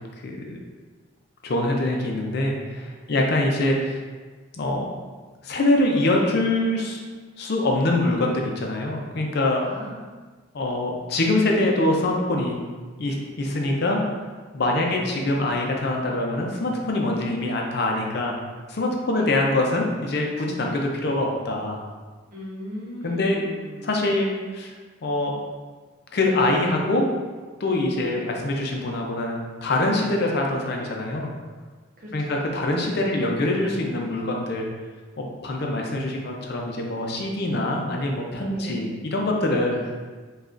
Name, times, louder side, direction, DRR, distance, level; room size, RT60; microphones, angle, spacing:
voice 1, 0.2-0.6 1.4-4.0 4.6-4.9 5.4-7.0 7.4-9.6 10.5-12.6 13.0-14.0 14.5-18.3 18.7-21.8 23.0-23.4 23.8-24.7 25.0-25.3 26.1-27.1 27.6-31.3 32.1-34.7 35.2-40.0, left 2 dB, 60° left, 0 dB, 0.5 m, -24 dB
voice 2, 9.6-10.0 14.6-15.0 19.1-19.3 22.3-24.0 28.0-28.3 32.0-32.3 38.5-38.9 39.7-39.8, equal, 50° right, -4 dB, 0.9 m, -38 dB
4.9 x 2.4 x 2.5 m, 1.4 s
head